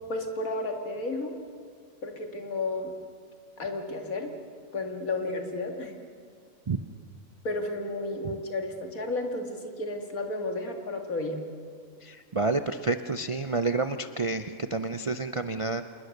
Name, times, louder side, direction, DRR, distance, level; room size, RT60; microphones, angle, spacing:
voice 1, 0.1-1.3 2.0-2.9 3.6-4.3 4.7-5.9 7.4-11.4, left 2 dB, 80° left, 4 dB, 2.5 m, -32 dB
voice 2, 12.0-15.8, right 3 dB, 45° right, 9 dB, 0.4 m, -29 dB
27.0 x 20.5 x 6.6 m, 2.1 s
omnidirectional pair, 1.5 m